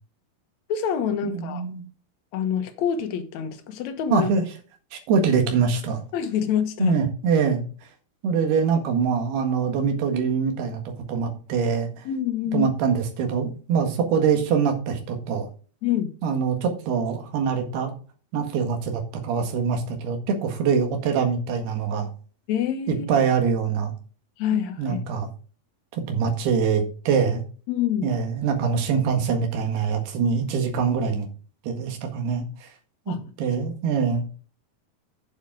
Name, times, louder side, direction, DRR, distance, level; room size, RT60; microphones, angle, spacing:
voice 1, 0.7-1.6 2.3-4.3 6.1-7.0 12.0-12.7 15.8-16.1 22.5-23.1 24.4-25.0 27.7-28.1 33.1-33.2, left 9 dB, 70° left, 1.7 m, -26 dB
voice 2, 1.2-1.8 4.1-4.5 4.9-6.0 6.8-7.6 8.2-10.8 11.1-12.0 12.5-15.5 16.2-17.9 18.3-22.1 22.9-23.9 24.5-25.3 25.9-27.4 28.0-31.3 31.6-32.7 33.1-34.3, right 6 dB, 75° right, 3.8 m, -24 dB
8.3 x 7.7 x 4.7 m
omnidirectional pair, 4.7 m